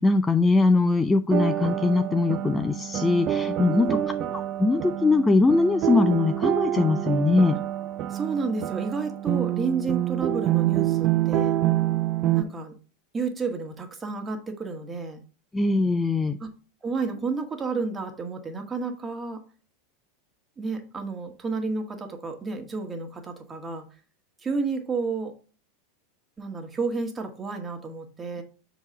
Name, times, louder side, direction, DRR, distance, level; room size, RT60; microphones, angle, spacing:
voice 1, 0.0-3.9 4.3-7.6 15.5-16.4, left 3 dB, 10° left, 9 dB, 0.5 m, -21 dB
sound 1, 1.3-12.4, right 12 dB, 40° right, 0.7 m, -26 dB
voice 2, 3.7-4.2 8.1-11.6 12.3-12.7 13.1-15.2 16.4-16.5 16.8-19.4 20.6-23.8 24.4-25.3 26.4-28.4, right 4 dB, 20° right, 4 dB, 1.7 m, -31 dB
7.1 x 4.1 x 5.2 m, 0.36 s
figure-of-eight pair, 85°, 0 cm